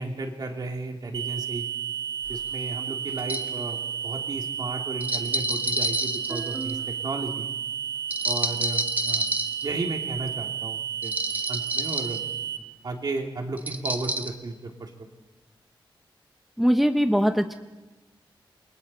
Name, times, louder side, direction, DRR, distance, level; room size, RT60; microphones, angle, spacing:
voice 1, 0.0-1.6 2.3-3.8 4.0-7.5 8.2-9.3 9.6-11.1 11.5-12.2 12.8-14.9, right 3 dB, 50° right, 2 dB, 2.7 m, -34 dB
sound 1, 1.1-12.6, right 8 dB, 75° right, 1.4 m, -32 dB
sound 2, 2.3-2.4 3.2-3.5 5.0-6.8 8.1-9.6 11.0-12.2 13.6-14.3, right 1 dB, 20° right, 1.3 m, -29 dB
voice 2, 16.6-17.5, equal, ahead, 7 dB, 0.7 m, -21 dB
29.0 x 23.5 x 4.3 m, 1.1 s
wide cardioid pair, 160°, 9 cm